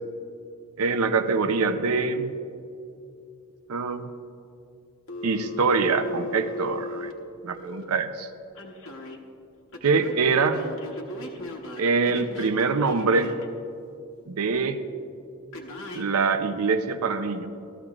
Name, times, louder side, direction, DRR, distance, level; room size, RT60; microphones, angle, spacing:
voice 1, 0.8-2.3 3.7-4.1 5.2-7.1 7.4-8.3 9.8-10.6 11.8-13.3 14.3-14.8 15.9-17.5, right 4 dB, 80° right, 10 dB, 0.6 m, -24 dB
Telephone, 5.1-7.8 8.5-9.2 9.7-13.5 15.5-16.1, left 2 dB, 65° left, 1.2 m, -37 dB
14.5 x 13.5 x 2.4 m, 2.5 s
head